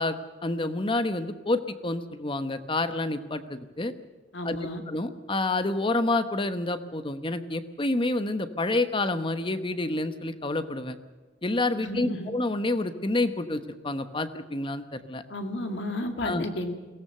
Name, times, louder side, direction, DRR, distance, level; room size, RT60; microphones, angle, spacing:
voice 1, 0.0-3.9 4.4-10.9 11.4-15.2 16.2-16.4, left 2 dB, 30° left, 10 dB, 1.1 m, -28 dB
voice 2, 4.3-4.8 11.8-12.3 15.3-16.7, left 1 dB, 70° left, 6 dB, 2.3 m, -32 dB
22.5 x 17.0 x 6.8 m, 1.3 s
head